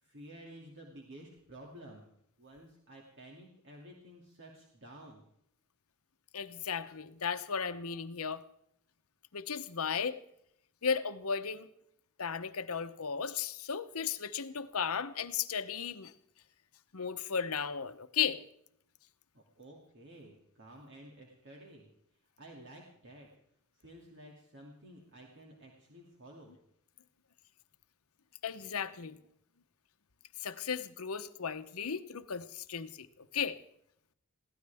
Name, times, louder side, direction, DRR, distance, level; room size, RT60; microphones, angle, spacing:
voice 1, 0.0-2.1 2.4-5.2 19.3-23.3 23.7-26.6, right 1 dB, 60° right, -1 dB, 2.5 m, -53 dB
voice 2, 6.3-8.4 9.3-10.2 10.8-11.7 12.2-16.1 16.9-18.4 28.4-29.2 30.4-33.6, left 6 dB, 85° left, 11 dB, 0.9 m, -35 dB
22.0 x 16.0 x 3.5 m, 0.72 s
head